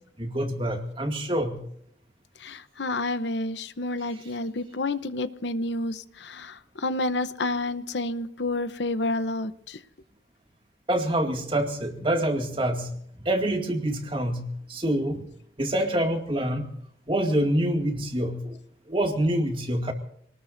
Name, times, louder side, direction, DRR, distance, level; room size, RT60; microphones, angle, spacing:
voice 1, 0.2-1.6 10.9-15.2 15.6-16.7 17.1-18.6 18.9-19.9, right 1 dB, 30° right, 3 dB, 2.2 m, -26 dB
voice 2, 2.4-9.8, left 2 dB, 75° left, 12 dB, 0.8 m, -29 dB
27.0 x 19.5 x 2.7 m, 0.71 s
head